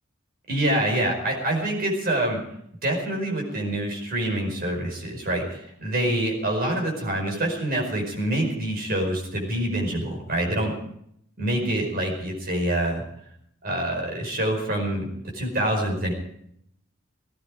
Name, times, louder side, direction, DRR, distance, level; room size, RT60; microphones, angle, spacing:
voice 1, 0.5-2.4 2.8-10.7 11.4-13.0 13.6-15.1 15.3-16.1, right 1 dB, 45° right, 1 dB, 5.0 m, -26 dB
18.0 x 15.5 x 5.0 m, 0.69 s
head